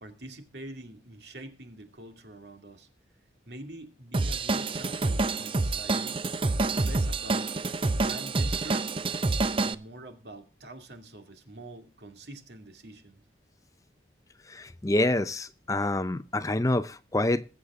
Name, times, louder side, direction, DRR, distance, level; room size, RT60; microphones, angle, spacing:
voice 1, 0.0-2.9 3.5-6.2 6.6-7.5 7.9-8.9 9.6-13.2, right 1 dB, 70° right, 2.4 m, -45 dB
Drum kit / Drum, 4.1-9.7, right 3 dB, 30° right, 0.6 m, -27 dB
voice 2, 14.5-17.5, left 1 dB, 20° left, 0.5 m, -27 dB
21.5 x 8.0 x 3.6 m
head